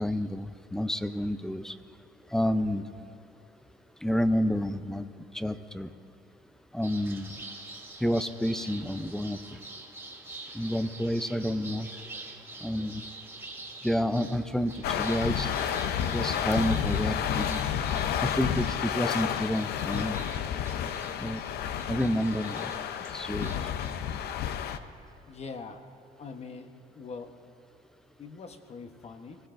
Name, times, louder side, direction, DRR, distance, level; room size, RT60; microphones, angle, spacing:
voice 1, 0.0-1.8 2.3-2.8 4.0-5.1 5.3-5.9 6.7-7.4 8.0-9.6 10.5-11.9 12.6-13.0 13.8-15.5 16.1-17.6 18.2-20.2 21.2-21.4 21.9-22.7 23.1-23.5, equal, 5° left, 11 dB, 0.5 m, -29 dB
sound 1, 6.8-24.5, right 3 dB, 15° right, 2.1 m, -46 dB
sound 2, 14.8-24.8, left 9 dB, 70° left, 0.6 m, -31 dB
voice 2, 25.3-25.9 26.2-27.3 28.2-29.4, left 4 dB, 40° left, 7 dB, 1.1 m, -43 dB
20.5 x 16.0 x 2.6 m, 2.5 s
cardioid pair, 110°, 17 cm